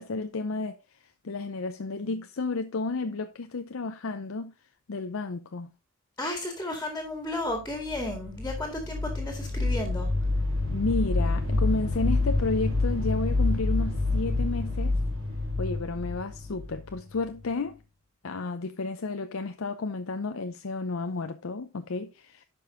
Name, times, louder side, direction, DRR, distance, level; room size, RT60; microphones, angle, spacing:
voice 1, 0.0-4.5 4.9-5.7 10.7-15.0 15.6-17.8 18.2-22.4, left 3 dB, 80° left, 0.6 m, -32 dB
voice 2, 6.2-10.1, left 1 dB, 10° left, 2.1 m, -33 dB
sound 1, 7.6-17.5, left 2 dB, 75° right, 3.7 m, -28 dB
11.5 x 5.4 x 3.7 m
head